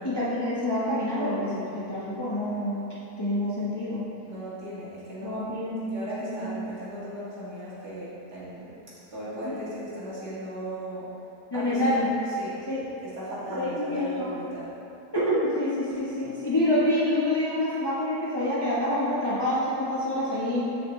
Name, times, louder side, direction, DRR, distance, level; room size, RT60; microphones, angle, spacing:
voice 1, 0.0-2.8 3.2-4.0 5.2-5.8 6.2-6.4 9.4-9.5 11.5-12.1 12.7-12.8 13.5-14.3 15.1-20.6, left 1 dB, 20° left, -9 dB, 0.9 m, -27 dB
voice 2, 4.2-5.4 5.8-8.8 9.1-11.1 11.5-12.6 13.0-14.7, equal, 75° right, -10 dB, 2.5 m, -37 dB
7.3 x 6.4 x 3.1 m, 2.7 s
omnidirectional pair, 1.7 m